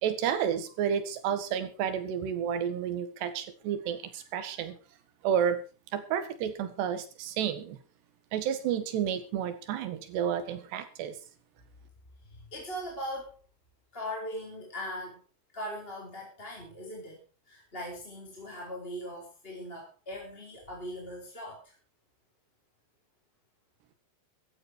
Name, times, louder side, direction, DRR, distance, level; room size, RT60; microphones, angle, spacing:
voice 1, 0.0-4.8 5.2-5.6 5.9-7.8 8.3-11.2, right 8 dB, 70° right, 10 dB, 3.7 m, -31 dB
voice 2, 12.2-13.4 13.9-15.2 15.5-21.7, equal, 15° left, -2 dB, 3.8 m, -40 dB
15.0 x 12.5 x 4.8 m, 0.34 s
omnidirectional pair, 5.2 m